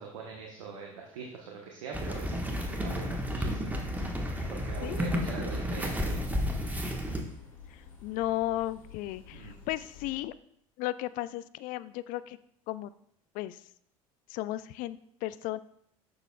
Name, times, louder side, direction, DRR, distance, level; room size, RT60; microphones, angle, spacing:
voice 1, 0.0-6.5 9.3-9.6, right 5 dB, 70° right, 0 dB, 1.1 m, -43 dB
Rain on window, 1.9-7.2, equal, 10° right, 1.3 m, -32 dB
sound 1, 4.0-10.2, left 6 dB, 80° left, 1.5 m, -51 dB
voice 2, 8.0-10.3 10.8-12.4 12.7-12.9 13.3-13.6 14.3-15.6, left 15 dB, 55° left, 16 dB, 0.4 m, -34 dB
10.0 x 6.8 x 2.3 m, 0.70 s
figure-of-eight pair, 65°, 17 cm